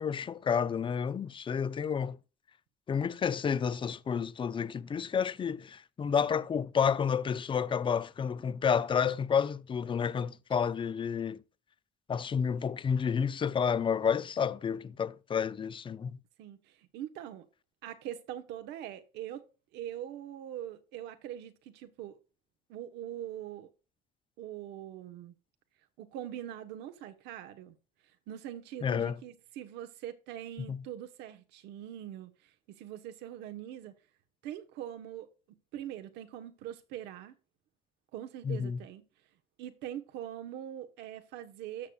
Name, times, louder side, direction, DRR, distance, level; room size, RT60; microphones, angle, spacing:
voice 1, 0.0-2.2 2.9-11.4 12.1-16.2 28.8-29.2 30.7-30.8 38.4-38.8, left 7 dB, 30° left, 0.5 m, -30 dB
voice 2, 16.4-17.5 17.8-19.4 19.7-22.2 22.7-23.7 24.4-25.3 26.0-27.8 28.3-34.0 34.4-35.3 35.7-37.3 38.1-39.0 39.6-41.9, right 11 dB, 90° right, 1.2 m, -42 dB
13.0 x 6.4 x 2.4 m
cardioid pair, 110°, 17 cm